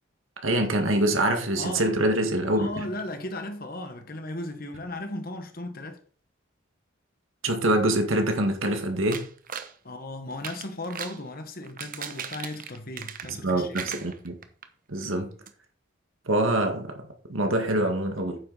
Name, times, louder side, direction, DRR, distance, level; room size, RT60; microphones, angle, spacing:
voice 1, 0.4-2.8 7.4-9.3 13.3-14.4 14.9-15.3 16.3-16.9 17.3-18.4, right 1 dB, 80° right, 1.9 m, -25 dB
voice 2, 1.6-2.0 2.6-6.0 9.8-13.9, left 1 dB, 45° left, 1.4 m, -36 dB
sound 1, 9.1-9.7 10.3-11.2 11.6-13.5 13.7-14.7 15.0-15.1 15.5-15.6, right 7 dB, 40° right, 0.9 m, -38 dB
9.3 x 7.8 x 4.1 m
head